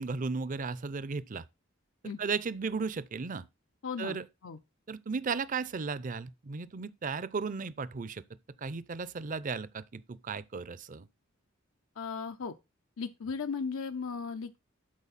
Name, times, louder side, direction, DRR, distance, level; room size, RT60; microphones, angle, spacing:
voice 1, 0.0-1.4 2.2-3.4 4.0-4.3 4.9-8.2 8.6-11.1, right 4 dB, 40° right, 0.5 m, -35 dB
voice 2, 3.8-4.2 4.4-4.6 12.0-12.5 13.0-14.6, left 5 dB, 85° left, 0.6 m, -36 dB
12.0 x 4.3 x 4.1 m
head